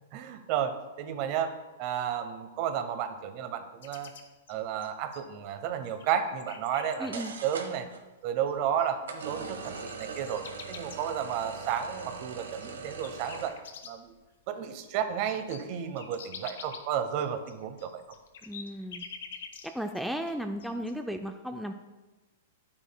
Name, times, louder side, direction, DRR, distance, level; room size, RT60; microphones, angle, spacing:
voice 1, 0.1-1.5 1.8-4.1 4.5-7.9 8.2-13.6 13.8-14.1 14.5-18.0, right 9 dB, 45° right, 9 dB, 0.9 m, -32 dB
sound 1, 3.8-5.5 5.9-7.3 8.5-8.6 8.8-14.2 14.5-14.6 14.9-20.0 20.3-20.9, left 6 dB, 75° left, 0.9 m, -47 dB
sound 2, 6.8-6.9 7.1-8.0 9.0-13.5, right 4 dB, 90° right, 1.2 m, -41 dB
voice 2, 7.0-7.3 18.5-19.0 19.7-21.7, equal, ahead, 5 dB, 0.4 m, -35 dB
9.9 x 8.8 x 2.3 m, 1.2 s
hypercardioid pair, 125°, 0 cm